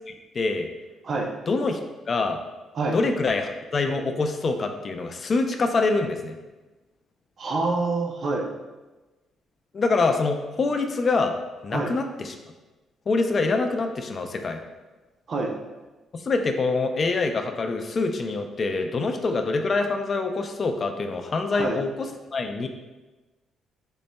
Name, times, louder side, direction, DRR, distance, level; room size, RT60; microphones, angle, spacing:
voice 1, 0.3-0.7 1.5-1.8 2.1-2.4 2.9-6.4 9.7-11.3 11.6-12.3 13.1-14.6 16.1-22.7, left 3 dB, 45° left, 6 dB, 0.3 m, -25 dB
voice 2, 7.4-8.5 11.7-11.9 15.3-15.6 21.5-21.8, right 3 dB, 50° right, 1 dB, 0.5 m, -26 dB
5.2 x 2.1 x 2.2 m, 1.2 s
cardioid pair, 90°, 0 cm